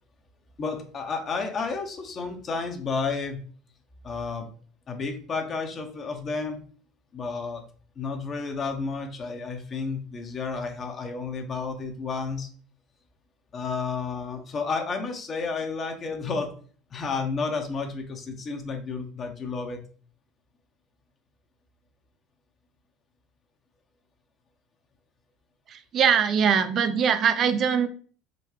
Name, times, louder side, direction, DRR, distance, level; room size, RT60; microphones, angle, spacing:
voice 1, 0.6-3.4 4.0-4.5 4.9-6.6 7.1-7.6 8.0-12.5 13.5-16.5 16.9-19.8, left 4 dB, 40° left, 4 dB, 0.8 m, -31 dB
voice 2, 25.7-27.9, right 7 dB, 45° right, 10 dB, 0.5 m, -22 dB
3.7 x 2.2 x 3.1 m, 0.43 s
hypercardioid pair, 80°, 0 cm